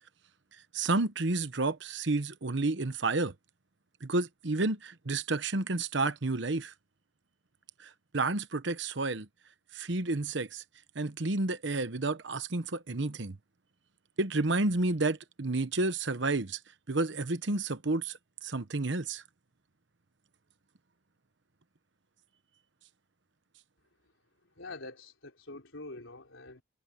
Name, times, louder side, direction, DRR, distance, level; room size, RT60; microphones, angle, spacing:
voice 1, 0.7-3.3 4.0-6.7 7.8-9.3 9.7-10.6 10.9-13.4 14.2-16.6 16.9-19.2, right 2 dB, 65° right, 1.1 m, -30 dB
voice 2, 24.6-26.6, left 2 dB, 85° left, 3.8 m, -45 dB
head